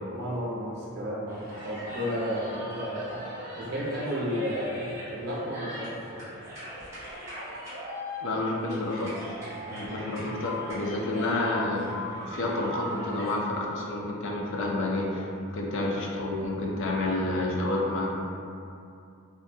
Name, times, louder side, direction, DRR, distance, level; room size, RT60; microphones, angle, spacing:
voice 1, 0.1-3.3 3.5-6.2 10.0-10.3, equal, 50° right, -7 dB, 0.6 m, -33 dB
sound 1, 1.3-13.3, equal, 15° right, 0.9 m, -39 dB
voice 2, 8.2-9.2 9.7-11.9 12.3-15.3 15.5-18.1, left 2 dB, 55° left, -2 dB, 0.4 m, -29 dB
2.5 x 2.1 x 2.6 m, 2.6 s
head